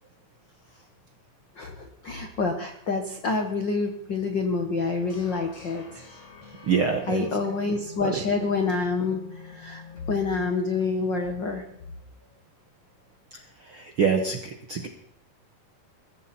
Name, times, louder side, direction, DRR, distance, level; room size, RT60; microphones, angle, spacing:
voice 1, 1.6-6.0 7.1-9.8 10.1-11.6, left 4 dB, 65° left, 5 dB, 1.1 m, -27 dB
sound 1, 5.1-12.0, left 6 dB, 50° left, 3.6 m, -47 dB
voice 2, 6.7-7.3 8.0-8.2 13.3-14.9, right 6 dB, 65° right, 5 dB, 1.3 m, -26 dB
22.0 x 15.0 x 4.3 m, 0.71 s
omnidirectional pair, 4.2 m